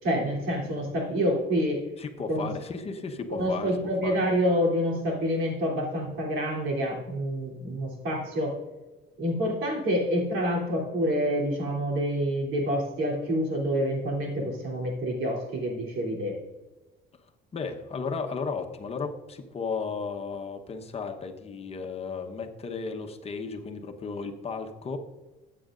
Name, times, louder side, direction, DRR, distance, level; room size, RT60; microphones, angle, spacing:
voice 1, 0.0-1.8 2.3-2.5 3.3-8.5 9.2-16.4, equal, 70° right, -1 dB, 3.3 m, -27 dB
voice 2, 2.0-4.3 17.5-25.0, left 5 dB, 30° left, 4 dB, 1.1 m, -34 dB
14.5 x 8.5 x 2.6 m, 1.1 s
cardioid pair, 125°, 20 cm